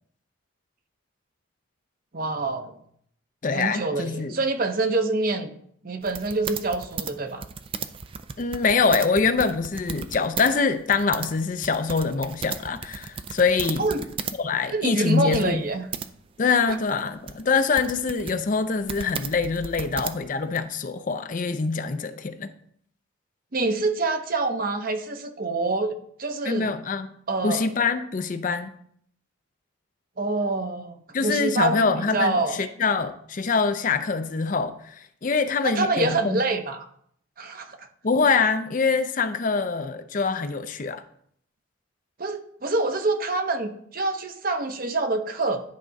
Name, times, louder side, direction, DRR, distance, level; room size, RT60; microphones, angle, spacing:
voice 1, 2.1-2.7 3.5-5.5 5.8-7.4 13.8-14.0 14.7-15.8 16.7-16.8 23.5-26.7 27.3-27.7 30.2-31.0 31.2-32.6 35.6-36.9 37.4-37.9 42.2-45.6, right 2 dB, 45° right, 7 dB, 0.7 m, -26 dB
voice 2, 3.4-4.4 8.4-13.9 14.4-15.6 16.4-22.5 26.4-27.1 27.4-28.8 31.1-36.4 38.0-41.0, left 4 dB, 40° left, 10 dB, 0.4 m, -24 dB
sound 1, 6.0-10.5 10.8-14.4 14.7-14.8 15.3-16.1 16.7-20.6, right 6 dB, 25° right, 0.3 m, -35 dB
10.5 x 3.6 x 5.2 m, 0.66 s
head